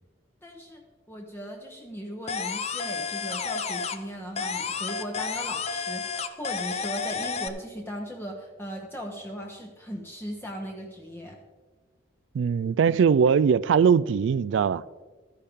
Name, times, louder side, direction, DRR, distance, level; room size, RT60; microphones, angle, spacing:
voice 1, 0.4-11.4, equal, 10° left, 0.9 m, -38 dB
sound 1, 2.3-4.1 4.4-7.5, left 5 dB, 35° left, 0.5 m, -31 dB
voice 2, 12.3-14.8, right 6 dB, 75° right, 0.3 m, -21 dB
13.0 x 9.9 x 3.6 m
head